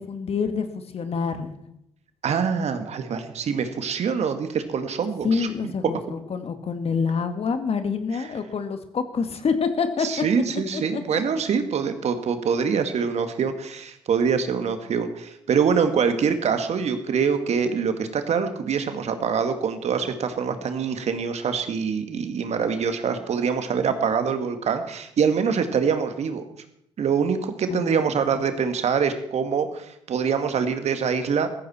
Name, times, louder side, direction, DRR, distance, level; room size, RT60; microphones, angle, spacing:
voice 1, 0.0-1.5 5.2-10.1 10.7-11.0 27.7-28.1, left 5 dB, 50° left, 8 dB, 2.0 m, -27 dB
voice 2, 2.2-5.5 10.0-26.4 27.0-31.5, right 6 dB, 60° right, 8 dB, 1.8 m, -24 dB
15.0 x 15.0 x 4.4 m, 0.77 s
hypercardioid pair, 45°, 13 cm